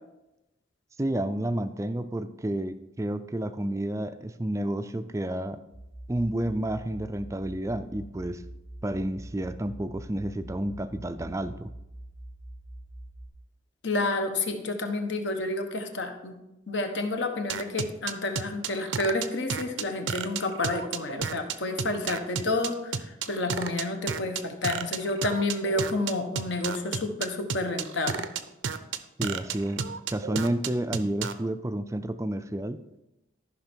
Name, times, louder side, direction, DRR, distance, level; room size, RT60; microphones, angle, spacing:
voice 1, 1.0-5.6 6.1-8.4 8.8-11.7 29.2-32.8, right 1 dB, 15° right, 11 dB, 0.4 m, -30 dB
sound 1, 5.7-13.3, right 1 dB, 45° left, 1.9 m, -44 dB
voice 2, 13.8-16.3 16.7-28.3, left 2 dB, 65° left, 5 dB, 1.2 m, -30 dB
sound 2, 17.5-31.3, right 6 dB, 70° right, 0.6 m, -31 dB
13.5 x 5.8 x 4.5 m, 0.94 s
head